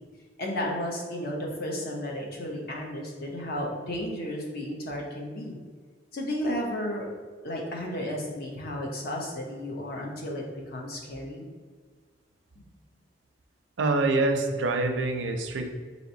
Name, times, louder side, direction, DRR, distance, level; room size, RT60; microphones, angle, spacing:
voice 1, 0.4-5.6 6.1-7.1 7.4-11.5 12.6-12.7, left 1 dB, 55° left, 0 dB, 0.7 m, -33 dB
voice 2, 13.8-15.7, right 2 dB, 80° right, 5 dB, 0.5 m, -25 dB
4.1 x 2.9 x 2.7 m, 1.5 s
head